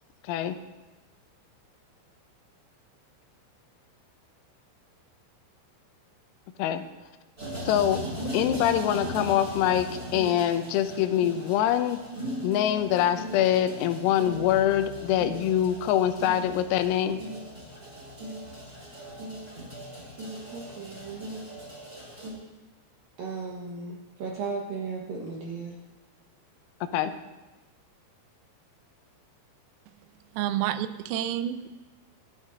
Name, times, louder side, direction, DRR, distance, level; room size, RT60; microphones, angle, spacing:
voice 1, 0.2-0.6 6.6-6.8 7.7-12.0 12.4-17.2 26.8-27.2, left 11 dB, 90° left, 3.5 m, -24 dB
sound 1, 7.4-22.3, equal, 10° right, 4.9 m, -38 dB
voice 2, 20.5-21.3 23.2-25.8, right 4 dB, 70° right, 2.1 m, -36 dB
voice 3, 30.3-31.7, right 11 dB, 85° right, 3.4 m, -29 dB
24.0 x 12.5 x 2.6 m
omnidirectional pair, 6.0 m